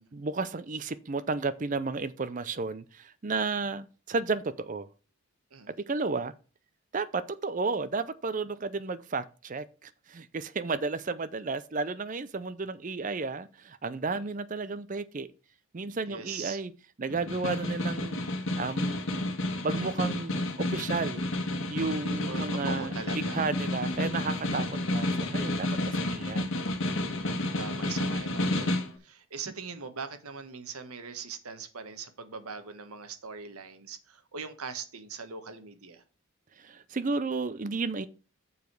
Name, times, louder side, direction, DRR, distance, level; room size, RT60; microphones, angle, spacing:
voice 1, 0.1-4.9 5.7-6.3 6.9-15.3 15.7-16.7 17.0-18.2 18.6-19.0 19.6-21.2 21.7-26.4 36.6-38.1, right 4 dB, 35° right, 0.5 m, -33 dB
voice 2, 16.0-16.6 22.3-23.9 27.6-36.0, right 5 dB, 85° right, 1.2 m, -41 dB
Snare drum, 17.1-28.9, left 1 dB, 60° left, 1.4 m, -31 dB
7.1 x 5.0 x 5.9 m
head